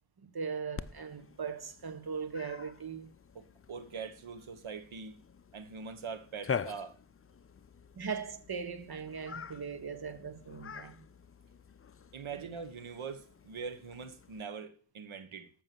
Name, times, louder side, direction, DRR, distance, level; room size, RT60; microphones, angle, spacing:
voice 1, 0.2-3.1 7.9-11.0 12.3-12.4, right 6 dB, 50° right, 1.6 m, -39 dB
Cat, 0.8-14.4, left 6 dB, 30° left, 0.6 m, -45 dB
voice 2, 3.3-5.2 5.5-7.0 12.1-15.5, right 5 dB, 75° right, 1.6 m, -43 dB
13.5 x 6.3 x 6.1 m
wide cardioid pair, 85°, 49 cm